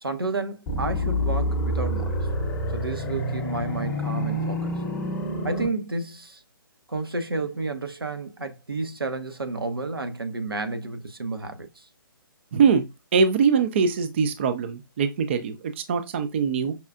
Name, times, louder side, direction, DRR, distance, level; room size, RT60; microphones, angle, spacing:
voice 1, 0.0-2.3 2.7-4.7 5.4-6.4 6.9-11.9, right 3 dB, 80° right, 0.8 m, -31 dB
sound 1, 0.7-5.7, equal, 15° left, 0.7 m, -27 dB
voice 2, 12.5-12.8 13.1-16.7, right 5 dB, 30° right, 0.3 m, -22 dB
5.3 x 2.3 x 2.4 m
figure-of-eight pair, 135°, 12 cm